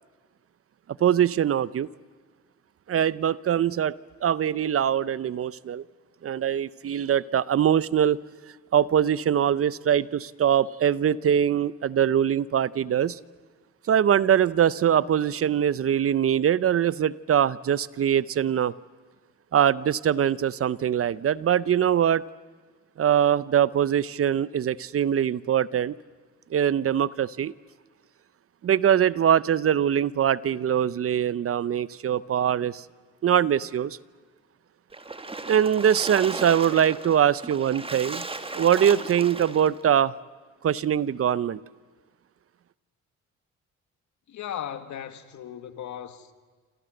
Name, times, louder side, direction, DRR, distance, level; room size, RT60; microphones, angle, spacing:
voice 1, 1.0-1.9 2.9-3.9 4.2-5.8 6.2-8.2 8.7-13.2 13.9-18.7 19.5-22.2 23.0-25.9 26.5-27.5 28.6-32.8 33.2-34.0 35.5-38.3 38.5-40.1 40.6-41.6, right 9 dB, 50° right, 0.8 m, -22 dB
Splash splatter, 34.9-39.8, right 3 dB, 20° right, 1.9 m, -36 dB
voice 2, 44.3-46.3, left 9 dB, 70° left, 2.1 m, -37 dB
28.0 x 27.0 x 7.9 m
cardioid pair, 90°, 30 cm